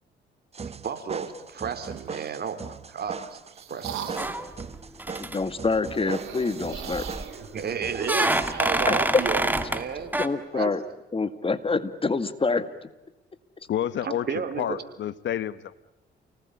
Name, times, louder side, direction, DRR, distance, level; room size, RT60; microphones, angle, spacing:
sound 1, 0.5-8.5, right 5 dB, 30° right, 1.2 m, -40 dB
voice 1, 0.6-3.4 3.7-4.2 7.5-10.2 10.5-10.7 14.0-14.8, right 7 dB, 55° right, 3.8 m, -32 dB
sound 2, 1.8-2.4 3.1-4.5 5.9-8.9, right 9 dB, 80° right, 4.3 m, -40 dB
sound 3, 4.2-4.7 5.0-5.4 6.7-7.3 8.0-9.9 10.1-10.3, right 1 dB, 10° right, 2.1 m, -26 dB
voice 2, 5.2-7.1 8.9-9.2 10.1-10.8 11.1-12.9, left 4 dB, 25° left, 2.0 m, -26 dB
voice 3, 13.7-15.7, left 10 dB, 65° left, 1.3 m, -29 dB
30.0 x 19.5 x 9.9 m
cardioid pair, 90°, 20 cm